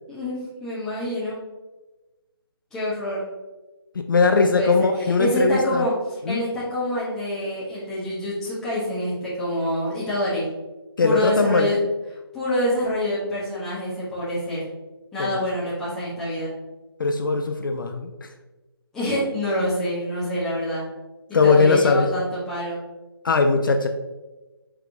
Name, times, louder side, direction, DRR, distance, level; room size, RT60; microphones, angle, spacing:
voice 1, 0.1-1.4 2.7-3.2 4.3-5.9 6.3-10.4 11.0-11.8 12.3-14.7 15.1-16.5 18.9-20.8 21.4-22.8, equal, 5° left, -9 dB, 0.7 m, -26 dB
voice 2, 4.0-5.9 6.3-6.4 11.0-11.7 15.2-15.4 17.0-18.3 21.3-22.1 23.2-23.9, left 4 dB, 55° left, 6 dB, 0.4 m, -20 dB
4.6 x 3.3 x 2.5 m, 1.1 s
figure-of-eight pair, 160°, 13 cm